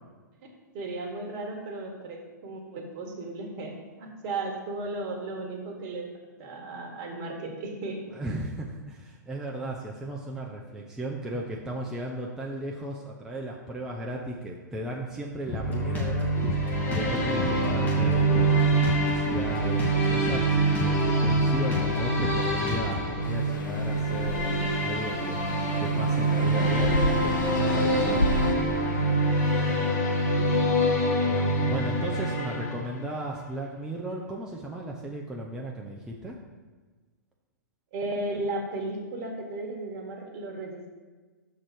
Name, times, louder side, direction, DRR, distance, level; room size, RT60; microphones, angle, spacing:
voice 1, 0.7-8.0 29.5-29.9 30.4-30.7 37.9-40.9, right 2 dB, 40° right, 2 dB, 1.5 m, -35 dB
voice 2, 8.1-28.3 30.2-30.4 31.2-36.4, right 1 dB, 5° right, -2 dB, 0.6 m, -36 dB
sound 1, 15.4-33.2, right 1 dB, 50° left, 2.3 m, -25 dB
Drum kit, 15.5-23.1, left 1 dB, 15° left, 1.6 m, -33 dB
sound 2, 23.2-28.5, left 1 dB, 85° left, 0.7 m, -31 dB
6.3 x 4.0 x 6.2 m, 1.4 s
hypercardioid pair, 115°, 10 cm